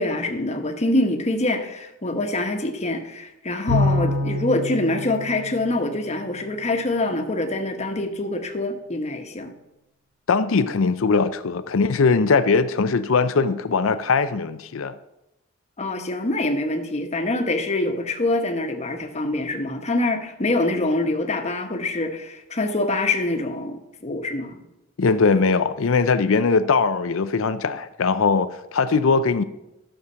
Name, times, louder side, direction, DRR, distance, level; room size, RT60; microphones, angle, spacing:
voice 1, 0.0-9.5 15.8-24.6, left 2 dB, 35° left, 1.1 m, -25 dB
Bowed string instrument, 3.7-6.3, left 1 dB, 55° right, 4.8 m, -26 dB
voice 2, 10.3-15.0 25.0-29.4, left 4 dB, 75° left, 0.5 m, -20 dB
12.5 x 6.6 x 5.7 m
head